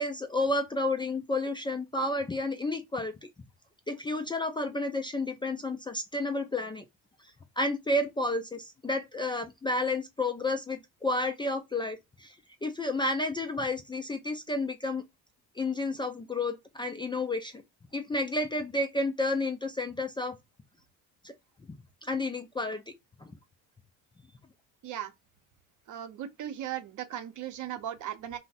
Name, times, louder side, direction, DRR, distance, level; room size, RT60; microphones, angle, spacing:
voice 1, 0.0-3.3 3.9-6.8 7.6-15.0 15.6-17.6 17.9-20.4 21.2-21.3 22.0-22.8 23.2-23.3, left 2 dB, 15° left, 0.3 m, -31 dB
voice 2, 25.9-28.4, right 11 dB, 55° right, 0.7 m, -37 dB
2.6 x 2.1 x 3.9 m
cardioid pair, 100°, 36 cm